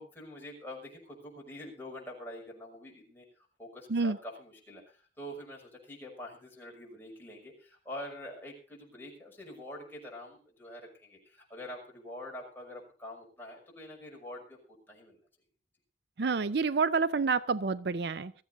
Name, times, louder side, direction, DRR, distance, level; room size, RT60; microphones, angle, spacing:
voice 1, 0.0-14.6 14.9-15.2, left 1 dB, 10° left, 6.1 m, -45 dB
voice 2, 16.2-18.3, right 4 dB, 65° right, 0.5 m, -28 dB
23.0 x 14.0 x 2.7 m
head